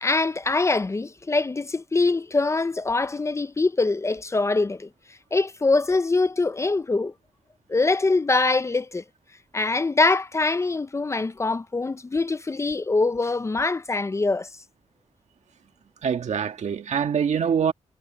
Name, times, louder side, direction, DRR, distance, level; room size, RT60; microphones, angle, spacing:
voice 1, 0.0-4.9 5.3-7.1 7.7-9.0 9.5-14.5, left 3 dB, 25° left, 0.5 m, -23 dB
voice 2, 16.0-17.7, right 7 dB, 75° right, 1.6 m, -24 dB
wide cardioid pair, 110°, 12 cm